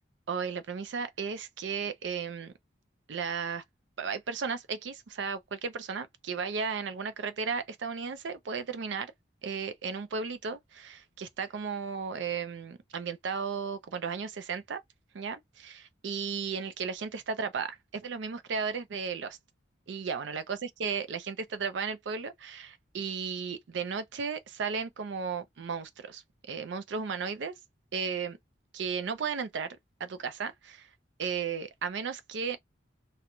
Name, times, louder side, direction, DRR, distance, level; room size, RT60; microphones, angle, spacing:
voice 1, 0.3-2.5 3.1-3.6 4.0-9.1 9.4-14.8 15.1-19.4 19.9-27.5 27.9-28.4 28.7-30.9 31.2-32.6, right 5 dB, 75° right, 0.4 m, -35 dB
2.4 x 2.1 x 2.9 m
head